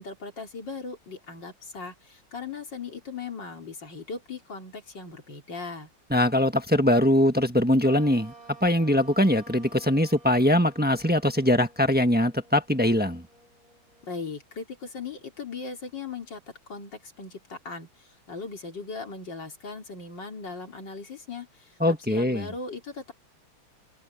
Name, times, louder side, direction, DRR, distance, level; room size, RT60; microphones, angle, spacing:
voice 1, 0.0-5.9 14.0-16.4 16.7-23.1, left 4 dB, 55° left, 3.8 m, -38 dB
voice 2, 6.1-8.3 8.6-13.2 21.8-22.5, left 1 dB, 5° right, 1.0 m, -22 dB
sound 1, 7.8-14.5, right 2 dB, 80° left, 6.9 m, -52 dB
omnidirectional pair, 2.3 m